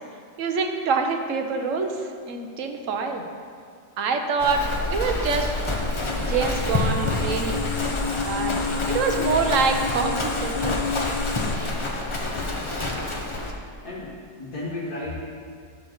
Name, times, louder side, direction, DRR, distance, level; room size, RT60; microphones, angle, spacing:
voice 1, 0.4-2.0 2.3-3.2 4.0-4.6 4.9-5.5 6.3-7.6 8.3-8.5 8.9-10.8, right 5 dB, 60° right, 4 dB, 1.0 m, -25 dB
Livestock farm animals working animals, 4.4-13.5, left 2 dB, 30° left, 0.5 m, -27 dB
sound 1, 4.8-11.6, left 6 dB, 90° left, 1.2 m, -32 dB
voice 2, 12.3-12.7 13.8-15.2, left 2 dB, 70° left, -7 dB, 1.9 m, -34 dB
10.0 x 4.3 x 6.5 m, 2.1 s
omnidirectional pair, 1.7 m